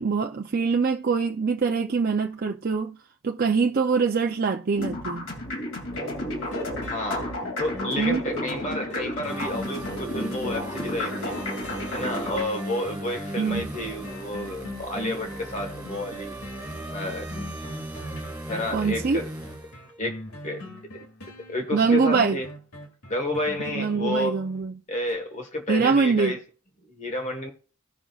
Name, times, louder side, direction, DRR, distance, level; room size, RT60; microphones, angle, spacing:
voice 1, 0.0-3.0 3.2-5.2 8.0-8.2 13.4-13.7 18.7-19.2 21.7-22.4 23.7-24.7 25.7-26.4, right 5 dB, 45° right, 0.5 m, -23 dB
sound 1, 4.8-12.4, left 1 dB, 65° left, 2.6 m, -32 dB
sound 2, 5.9-24.6 25.1-25.2, left 1 dB, 85° left, 2.4 m, -41 dB
voice 2, 6.9-7.3 7.6-11.3 11.9-16.3 16.9-17.3 18.5-19.3 20.0-20.6 21.5-22.5 23.1-24.4 24.9-26.4 26.9-27.5, left 1 dB, 35° left, 1.4 m, -30 dB
sound 3, 9.3-20.1, right 1 dB, 10° right, 4.2 m, -37 dB
18.0 x 6.0 x 2.4 m
head